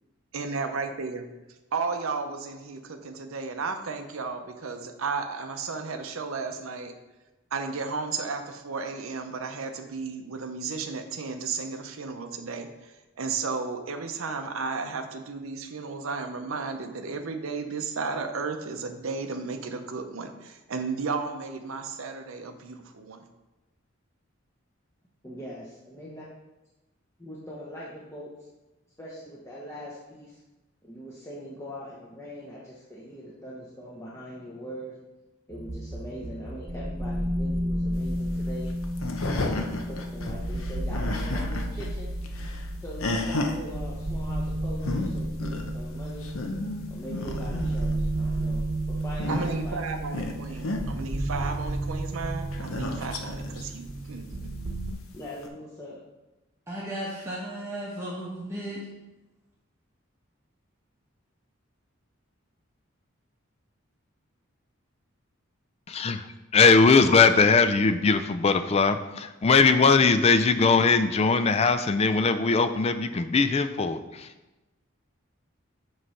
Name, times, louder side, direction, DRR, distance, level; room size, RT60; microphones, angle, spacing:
voice 1, 0.3-1.3 1.7-7.0 7.5-23.2 49.3-54.5, right 4 dB, 85° right, 6 dB, 0.7 m, -33 dB
voice 2, 25.2-26.2 27.2-28.3 29.0-30.4 30.8-34.9 35.5-38.7 39.3-42.1 42.8-46.3 46.9-48.6 48.9-49.8 55.1-56.0, equal, 15° left, -7 dB, 0.9 m, -41 dB
sound 1, 35.5-54.9, right 1 dB, 55° right, 1.0 m, -32 dB
sound 2, 38.0-41.9 42.2-43.6 44.5-44.6 44.8-45.1 45.4-45.7 46.1-47.9 49.0-49.7 50.1-50.8 52.5-53.6 54.4-54.5 55.4-55.5, left 2 dB, 85° left, 0.8 m, -32 dB
voice 3, 56.7-58.8, right 1 dB, 15° right, -6 dB, 0.9 m, -35 dB
voice 4, 65.9-66.2 66.5-74.3, left 4 dB, 30° left, 9 dB, 0.4 m, -20 dB
7.6 x 3.2 x 5.6 m, 1.1 s
head